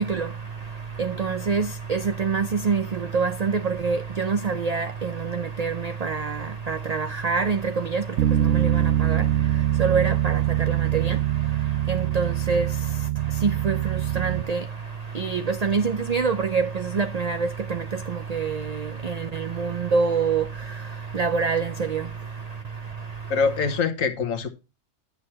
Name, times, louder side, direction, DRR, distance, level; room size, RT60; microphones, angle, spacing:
voice 1, 0.0-23.8, right 5 dB, 50° right, 0.5 m, -27 dB
Bass guitar, 8.2-14.4, right 12 dB, 75° right, 1.0 m, -24 dB
voice 2, 23.3-24.5, left 5 dB, 85° left, 1.5 m, -24 dB
9.9 x 6.3 x 4.2 m
omnidirectional pair, 1.3 m